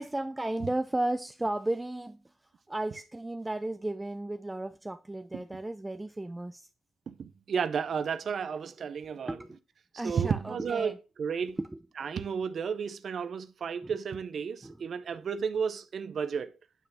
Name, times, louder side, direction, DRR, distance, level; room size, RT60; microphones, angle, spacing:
voice 1, 0.0-2.3 2.7-6.7 9.3-9.6 10.0-11.0 11.6-11.8 13.8-13.9 14.6-14.8 15.1-15.2, right 1 dB, 15° right, 0.4 m, -34 dB
voice 2, 7.1-9.4 10.0-11.6 12.0-16.5, right 6 dB, 60° right, 0.6 m, -32 dB
9.2 x 3.2 x 5.6 m
cardioid pair, 85°, 0 cm